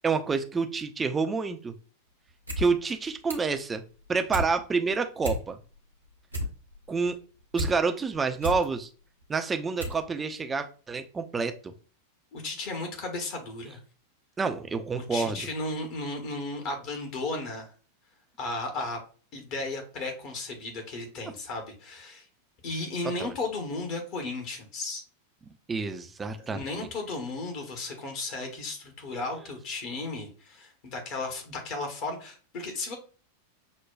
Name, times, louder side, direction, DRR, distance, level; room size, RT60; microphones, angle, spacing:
voice 1, 0.0-1.7 2.6-3.8 4.1-5.6 6.9-7.2 7.5-8.9 9.3-11.7 14.4-15.5 23.2-23.3 25.7-26.9, right 4 dB, 15° right, 7 dB, 0.4 m, -28 dB
sound 1, 2.3-2.7 2.9-3.6 3.9-4.5 4.9-5.0 5.2-5.8 6.1-7.7 8.1-8.7 9.2-9.3 9.8-10.0 10.3-10.4, equal, 90° right, 1.0 m, -32 dB
voice 2, 12.3-13.8 14.9-17.7 18.4-19.0 19.3-22.2 22.6-25.0 26.5-33.0, left 2 dB, 45° left, 3 dB, 0.9 m, -35 dB
6.1 x 2.2 x 2.2 m, 0.38 s
figure-of-eight pair, 90°, 0 cm